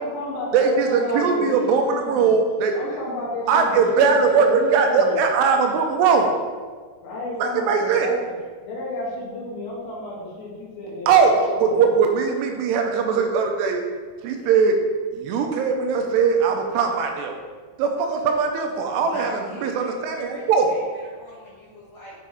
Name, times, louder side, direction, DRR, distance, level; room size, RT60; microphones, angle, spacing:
voice 1, 0.0-5.2 5.5-5.8 7.0-8.3 8.6-11.8, left 2 dB, 85° left, -5 dB, 4.2 m, -32 dB
voice 2, 0.5-2.7 3.5-6.3 7.4-8.1 11.1-13.8 14.2-14.8 15.1-17.3 17.8-19.3 19.6-20.7, right 5 dB, 80° right, 3 dB, 2.6 m, -20 dB
voice 3, 19.0-22.2, left 1 dB, 45° left, -7 dB, 1.7 m, -40 dB
7.6 x 6.3 x 3.4 m, 1.5 s
omnidirectional pair, 5.0 m